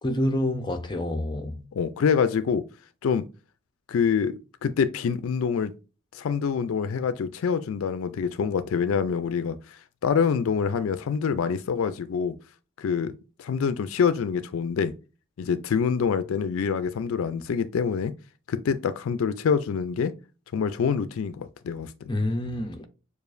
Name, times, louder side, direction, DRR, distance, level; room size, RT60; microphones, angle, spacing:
voice 1, 0.0-1.6 22.1-22.8, left 1 dB, 20° left, 0.6 m, -27 dB
voice 2, 1.7-2.6 3.0-3.2 3.9-4.3 4.6-5.7 6.1-12.4 12.8-13.1 13.4-14.9 15.4-18.1 18.5-20.1 20.5-22.1, left 6 dB, 80° left, 0.4 m, -26 dB
6.8 x 2.4 x 2.5 m
head